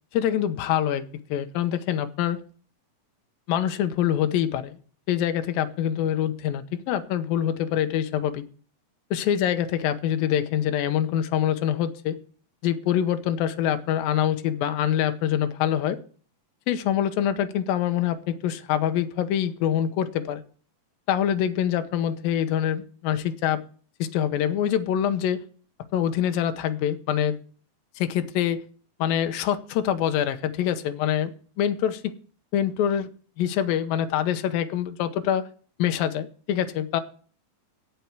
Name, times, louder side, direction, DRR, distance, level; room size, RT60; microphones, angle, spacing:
voice 1, 0.1-1.0 1.3-2.4 3.5-4.8 5.1-8.4 9.1-12.2 12.6-16.0 16.7-20.4 21.1-23.6 24.0-25.4 25.9-27.4 28.0-28.6 29.0-31.3 31.6-32.1 32.5-33.1 33.4-35.4 35.8-37.0, left 10 dB, 85° left, 9 dB, 2.7 m, -25 dB
17.0 x 5.8 x 4.7 m, 0.43 s
omnidirectional pair, 4.1 m